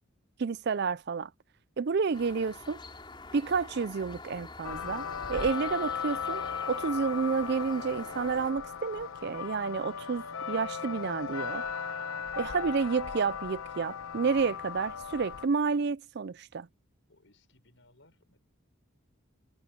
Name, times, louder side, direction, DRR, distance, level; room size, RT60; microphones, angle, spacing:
voice 1, 0.4-1.3 1.8-2.8 3.3-11.6 12.4-16.7, right 5 dB, 50° right, 0.4 m, -30 dB
sound 1, 2.1-8.5, left 3 dB, 20° left, 4.0 m, -46 dB
sound 2, 4.6-15.5, left 6 dB, 75° left, 1.0 m, -37 dB
voice 2, 17.1-18.4, left 2 dB, 60° left, 6.7 m, -63 dB
head